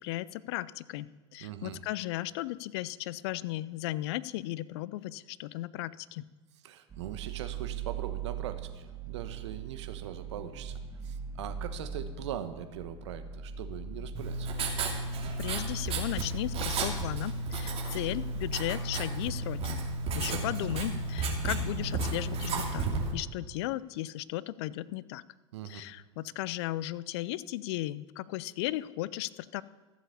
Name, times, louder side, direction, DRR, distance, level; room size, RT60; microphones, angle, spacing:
voice 1, 0.0-6.3 15.4-19.8 20.1-25.2 25.6-29.6, left 16 dB, 60° left, 19 dB, 0.5 m, -36 dB
voice 2, 1.4-1.8 6.6-14.5 20.3-20.5 25.5-25.8, right 9 dB, 70° right, 9 dB, 1.1 m, -41 dB
sound 1, 6.9-19.3, right 6 dB, 25° right, 1.7 m, -42 dB
Writing, 14.2-23.1, right 3 dB, 40° right, 2.7 m, -33 dB
14.0 x 7.3 x 7.0 m, 1.3 s
hypercardioid pair, 85°, 15 cm